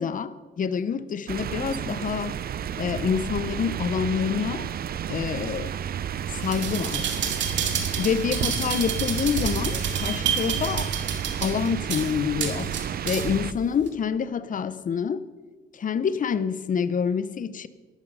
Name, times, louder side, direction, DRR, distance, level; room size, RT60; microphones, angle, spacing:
voice 1, 0.0-2.4 2.8-4.7 5.1-5.7 6.3-7.2 8.0-10.9 11.4-12.7 13.1-15.2 15.7-17.7, left 7 dB, 40° left, 0.8 m, -27 dB
sound 1, 1.3-13.5, right 9 dB, 50° right, 0.5 m, -32 dB
sound 2, 6.4-13.4 13.9-14.0, right 7 dB, 70° right, 2.2 m, -29 dB
13.0 x 12.5 x 5.5 m
cardioid pair, 90°, 20 cm